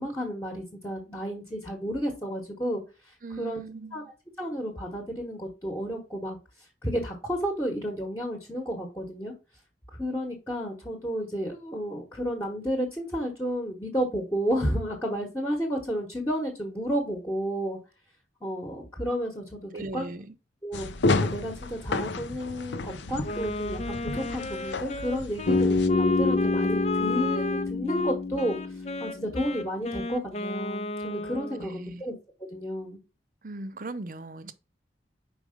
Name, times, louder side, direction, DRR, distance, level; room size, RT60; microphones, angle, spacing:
voice 1, 0.0-2.8 3.4-3.6 3.9-4.0 4.4-6.4 6.8-9.3 9.9-17.8 18.4-20.1 20.6-20.9 21.2-28.6 29.0-32.1 32.5-33.0, equal, 15° left, 1.2 m, -31 dB
voice 2, 3.2-4.1 19.7-20.4 31.6-32.0 33.4-34.5, right 2 dB, 50° right, 0.6 m, -38 dB
sound 1, 20.7-25.9, left 2 dB, 90° left, 0.6 m, -31 dB
Wind instrument woodwind instrument, 23.2-31.7, left 2 dB, 35° left, 0.6 m, -32 dB
Bass guitar, 25.5-29.5, left 3 dB, 55° left, 0.9 m, -27 dB
5.0 x 4.8 x 5.0 m
head